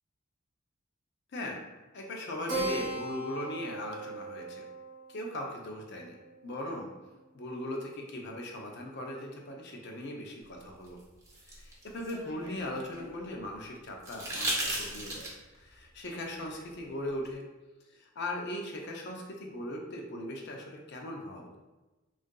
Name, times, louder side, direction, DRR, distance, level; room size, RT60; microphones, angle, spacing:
voice 1, 1.9-4.6 5.1-6.2 6.4-6.9 7.3-11.0 11.4-17.4 17.9-21.6, left 1 dB, 55° left, 1 dB, 0.5 m, -39 dB
Keyboard (musical), 2.5-7.5, right 2 dB, 55° right, 0.6 m, -39 dB
sound 1, 10.9-13.1 14.0-15.6 17.2-17.3, right 1 dB, 15° right, 0.5 m, -36 dB
3.7 x 2.4 x 2.2 m, 1.1 s
head